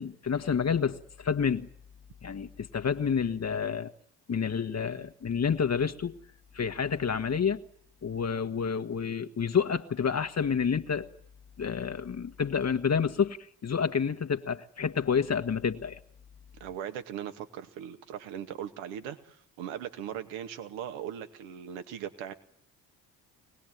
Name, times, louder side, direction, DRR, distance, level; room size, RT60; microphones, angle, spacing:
voice 1, 0.0-1.7 2.2-3.9 4.3-6.1 6.5-7.6 8.0-11.1 11.6-13.4 13.6-16.0, left 6 dB, 30° left, 1.5 m, -29 dB
voice 2, 16.6-22.3, right 9 dB, 65° right, 2.2 m, -39 dB
24.5 x 19.5 x 9.5 m
figure-of-eight pair, 50°, 49 cm